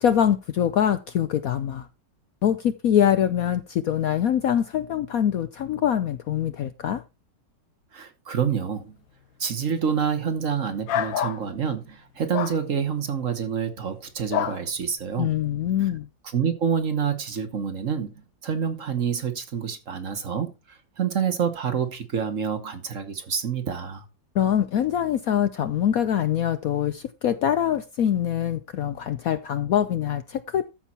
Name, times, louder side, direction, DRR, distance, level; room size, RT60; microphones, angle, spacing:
voice 1, 0.0-1.9 2.4-7.0 15.2-16.1 24.3-30.6, left 10 dB, 65° left, 0.9 m, -24 dB
voice 2, 7.9-8.9 9.4-15.3 16.2-24.0, right 7 dB, 50° right, 1.4 m, -27 dB
sound 1, 10.9-11.4 12.3-12.6 14.3-14.6, left 10 dB, 85° left, 1.6 m, -26 dB
13.5 x 5.5 x 4.3 m
omnidirectional pair, 2.0 m